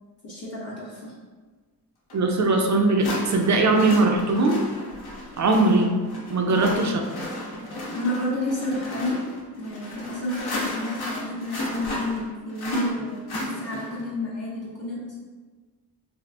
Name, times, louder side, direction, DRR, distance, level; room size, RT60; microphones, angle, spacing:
voice 1, 0.2-1.1 6.5-6.8 7.9-9.2 9.6-15.2, left 1 dB, 40° left, -7 dB, 0.6 m, -31 dB
sound 1, 2.1-2.2 3.0-14.1, left 1 dB, 75° left, 0.8 m, -34 dB
voice 2, 2.1-4.7 5.4-5.9 6.3-7.0, right 2 dB, 50° right, 3 dB, 0.4 m, -20 dB
3.4 x 2.4 x 2.4 m, 1.4 s
wide cardioid pair, 105°, 39 cm